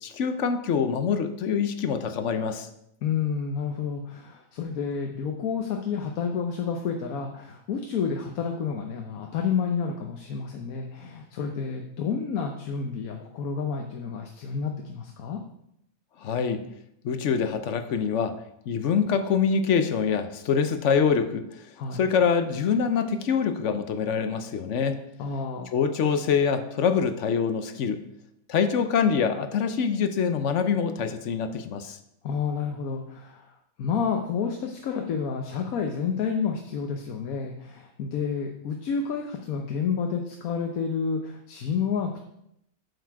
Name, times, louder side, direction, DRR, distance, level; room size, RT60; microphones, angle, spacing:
voice 1, 0.0-2.7 16.2-16.6 17.0-18.4 18.7-21.6 21.9-25.0 25.7-28.0 28.5-32.0, left 6 dB, 65° left, 10 dB, 1.0 m, -25 dB
voice 2, 3.0-15.4 21.8-22.0 25.2-25.7 32.2-42.2, left 6 dB, 80° left, 3 dB, 1.3 m, -30 dB
7.8 x 7.0 x 4.7 m, 0.77 s
omnidirectional pair, 1.5 m